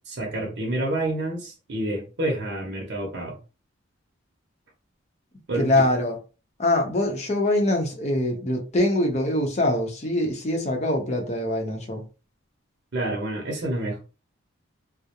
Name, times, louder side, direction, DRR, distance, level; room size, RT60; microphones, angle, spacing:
voice 1, 0.0-3.4 5.5-5.9 12.9-14.0, right 1 dB, 55° right, 0.7 m, -28 dB
voice 2, 5.5-6.2 6.6-12.0, left 1 dB, 35° left, 0.6 m, -23 dB
2.4 x 2.0 x 2.8 m
head